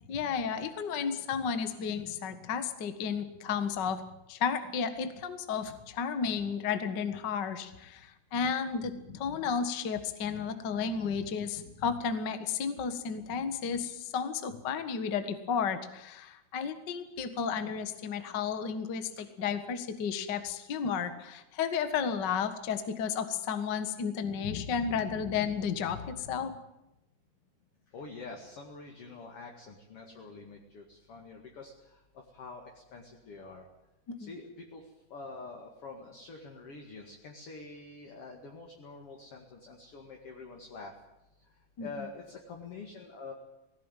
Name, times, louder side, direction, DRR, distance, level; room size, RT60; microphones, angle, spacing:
voice 1, 0.1-4.0 4.3-26.5 34.1-34.3 41.8-41.9, left 6 dB, 65° left, 9 dB, 1.0 m, -33 dB
voice 2, 27.9-33.6 34.2-34.8 35.1-40.9 41.8-43.3, left 3 dB, 45° left, 1 dB, 2.5 m, -46 dB
20.0 x 17.0 x 9.2 m, 0.90 s
omnidirectional pair, 4.7 m